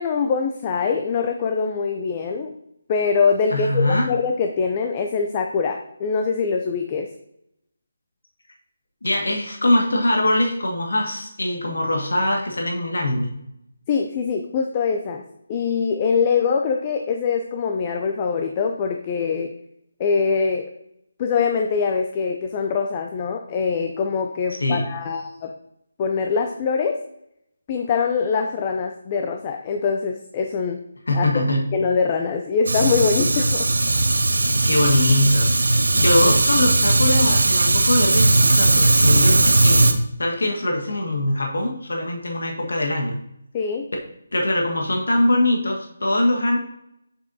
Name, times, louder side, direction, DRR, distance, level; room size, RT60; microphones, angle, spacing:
voice 1, 0.0-2.5 2.9-7.1 13.9-15.2 15.5-19.5 20.0-20.7 21.2-25.5 26.0-26.9 27.7-30.8 31.1-31.2 31.7-33.7 43.5-43.9, left 5 dB, 25° left, 4 dB, 0.5 m, -23 dB
voice 2, 3.5-4.1 9.0-13.3 24.6-24.8 31.1-31.6 34.6-39.9 40.2-43.1 44.3-46.6, left 1 dB, 85° left, 1 dB, 1.5 m, -22 dB
Fire, 32.7-39.9, right 2 dB, 80° right, 0.7 m, -18 dB
7.1 x 5.1 x 2.7 m, 0.78 s
figure-of-eight pair, 165°, 0 cm